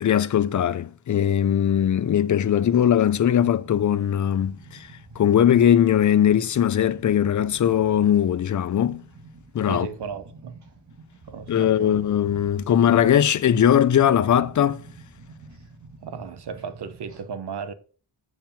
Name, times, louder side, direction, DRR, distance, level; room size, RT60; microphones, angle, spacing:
voice 1, 0.0-4.9 5.2-9.0 9.5-9.9 11.5-14.8, left 9 dB, 45° left, 0.4 m, -20 dB
sound 1, 2.3-17.2, right 2 dB, 40° right, 2.0 m, -48 dB
voice 2, 9.6-10.6 11.3-12.0 16.0-17.7, right 6 dB, 60° right, 0.9 m, -35 dB
7.3 x 4.7 x 5.2 m
wide cardioid pair, 175°, 46 cm